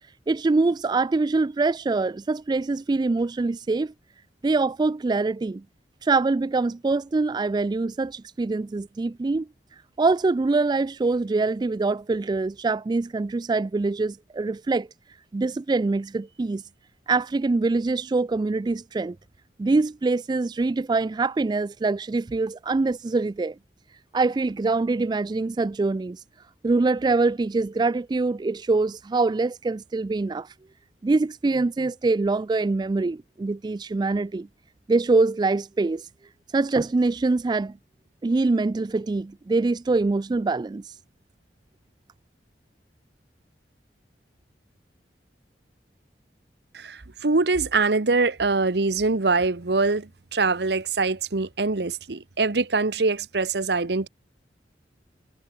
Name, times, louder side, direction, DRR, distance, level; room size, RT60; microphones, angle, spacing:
voice 1, 0.3-3.9 4.4-5.6 6.0-9.5 10.0-14.9 15.3-16.6 17.1-19.2 19.6-23.5 24.1-26.2 26.6-30.5 31.0-34.5 34.9-36.1 36.5-37.7 38.2-40.9, right 3 dB, 25° right, 0.3 m, -24 dB
voice 2, 46.7-54.1, right 3 dB, 65° right, 1.0 m, -23 dB
head